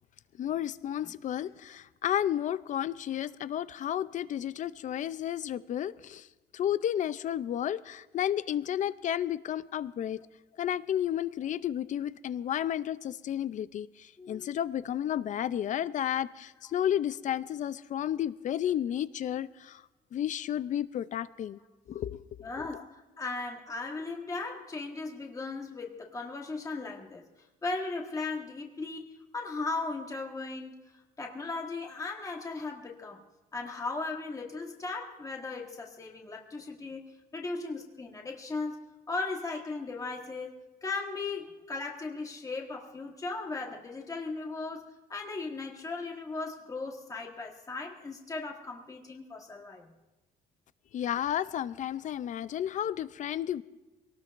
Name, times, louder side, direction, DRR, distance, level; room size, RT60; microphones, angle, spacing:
voice 1, 0.4-6.3 6.5-10.2 10.6-19.8 20.1-21.6 21.9-22.2 22.6-22.7 50.9-53.6, left 10 dB, 45° left, 17 dB, 0.5 m, -32 dB
voice 2, 14.2-14.5 22.4-27.2 27.6-30.8 31.2-33.2 33.5-40.5 40.8-49.9, left 3 dB, 20° left, 0 dB, 1.5 m, -37 dB
23.0 x 18.5 x 2.6 m, 1.1 s
cardioid pair, 110°, 17 cm